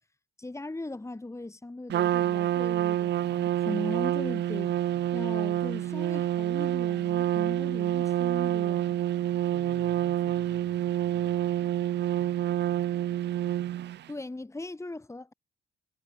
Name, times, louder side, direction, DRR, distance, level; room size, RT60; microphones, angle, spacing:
voice 1, 0.4-4.7 5.1-9.0 14.1-15.3, left 2 dB, 15° left, 3.4 m, -39 dB
Trumpet, 1.9-14.0, right 12 dB, 60° right, 0.6 m, -28 dB
voice 2, 9.5-11.6, left 9 dB, 60° left, 5.1 m, -51 dB
cardioid pair, 90°, 20 cm